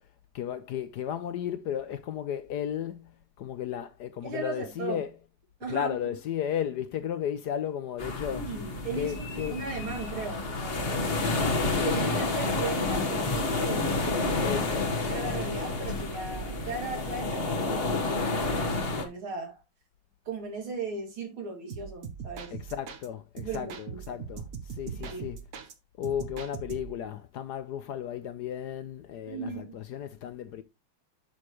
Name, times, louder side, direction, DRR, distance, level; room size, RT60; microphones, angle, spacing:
voice 1, 0.3-5.2 5.7-8.5 8.9-9.6 14.4-15.0 22.5-25.4 26.0-30.6, left 9 dB, 70° left, 1.1 m, -34 dB
voice 2, 4.2-5.0 5.6-6.0 8.3-11.1 11.8-14.3 15.1-19.6 20.3-22.5 23.4-24.2 24.9-25.3 29.3-29.8, right 4 dB, 90° right, 3.3 m, -37 dB
sound 1, 8.0-19.1, left 3 dB, 35° left, 1.3 m, -29 dB
sound 2, 12.0-16.0, left 3 dB, 15° left, 1.2 m, -42 dB
sound 3, 21.7-23.1 23.4-25.7 26.0-27.0, right 7 dB, 55° right, 1.3 m, -41 dB
8.5 x 6.4 x 3.0 m
omnidirectional pair, 2.2 m